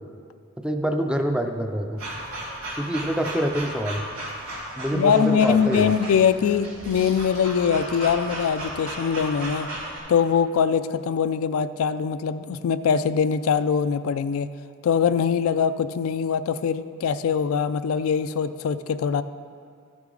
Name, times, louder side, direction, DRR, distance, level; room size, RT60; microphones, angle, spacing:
voice 1, 0.6-2.0 2.8-4.0 4.8-5.9, equal, 5° right, 5 dB, 0.4 m, -26 dB
sound 1, 2.0-10.0, right 1 dB, 85° right, 2.4 m, -35 dB
voice 2, 4.9-9.7 10.1-14.5 14.8-19.2, left 7 dB, 75° left, 12 dB, 0.3 m, -22 dB
13.5 x 6.1 x 3.8 m, 2.2 s
head